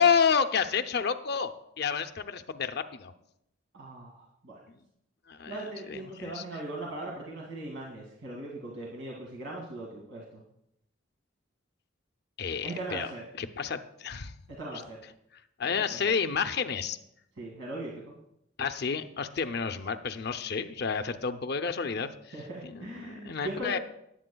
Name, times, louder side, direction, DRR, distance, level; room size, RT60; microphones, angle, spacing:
voice 1, 0.0-3.1 5.3-5.5 5.9-6.4 12.4-13.1 13.4-14.3 15.6-17.0 18.6-22.1 22.6-23.8, left 6 dB, 55° left, 9 dB, 0.6 m, -29 dB
voice 2, 3.7-4.6 5.5-10.4 12.6-13.3 14.5-15.0 15.6-16.1 17.4-18.1 22.3-23.8, right 2 dB, 75° right, -3 dB, 2.1 m, -39 dB
18.5 x 8.6 x 2.3 m, 0.77 s
head